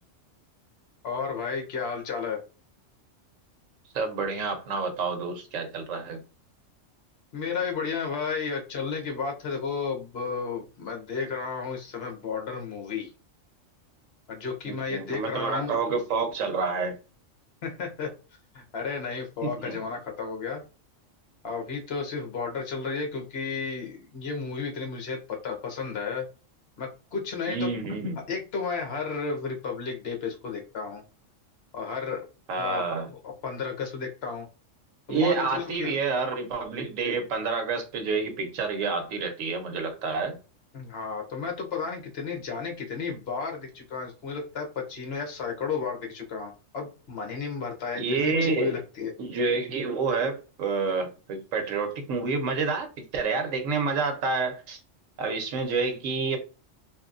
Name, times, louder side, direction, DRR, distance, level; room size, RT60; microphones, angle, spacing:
voice 1, 1.0-2.4 7.3-13.1 14.3-15.8 17.6-18.1 18.5-20.6 21.4-26.3 26.8-27.7 28.3-31.0 31.7-32.2 32.6-32.8 33.1-34.5 35.1-36.0 40.7-49.1, left 5 dB, 55° left, 1.0 m, -33 dB
voice 2, 3.9-6.2 14.7-16.9 19.4-19.8 27.5-28.2 32.5-33.1 35.1-40.4 47.9-48.7 49.2-52.9 53.1-54.8 55.2-56.4, right 4 dB, 90° right, 1.1 m, -28 dB
2.8 x 2.6 x 2.4 m
omnidirectional pair, 1.3 m